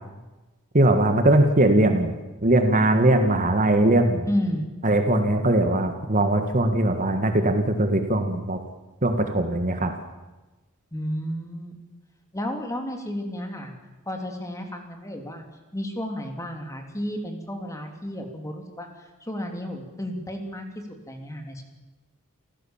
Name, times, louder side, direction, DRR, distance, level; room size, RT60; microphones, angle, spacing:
voice 1, 0.7-2.1 2.4-4.3 4.8-8.6 9.0-9.9, right 1 dB, 35° right, 6 dB, 1.7 m, -20 dB
voice 2, 4.3-4.7 10.9-11.8 12.3-13.7 14.1-15.4 15.7-20.7 21.1-21.6, equal, 15° left, 4 dB, 3.0 m, -32 dB
28.5 x 14.5 x 7.3 m, 1.1 s
head